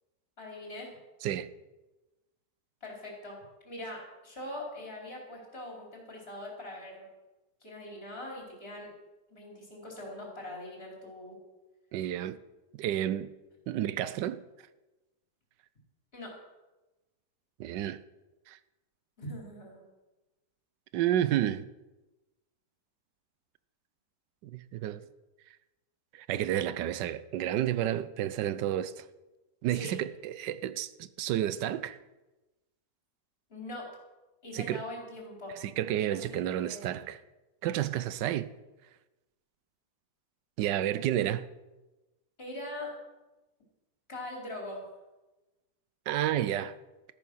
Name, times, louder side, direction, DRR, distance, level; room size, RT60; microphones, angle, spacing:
voice 1, 0.4-0.9 2.8-3.4 3.6-7.1 7.6-8.9 9.3-11.4 16.1-16.4 19.2-19.8 29.7-30.0 33.5-34.0 34.4-35.6 36.1-36.9 42.4-42.9 44.1-44.8, left 1 dB, 35° left, 4.5 m, -42 dB
voice 2, 1.2-1.5 11.9-12.4 12.7-13.3 13.7-14.4 17.6-18.0 18.5-18.6 20.9-21.7 24.4-25.0 26.1-29.0 29.6-32.0 34.5-34.8 35.6-37.2 37.6-38.5 40.6-41.5 46.1-46.8, right 12 dB, 85° right, 1.3 m, -31 dB
14.0 x 9.1 x 6.3 m
omnidirectional pair, 1.8 m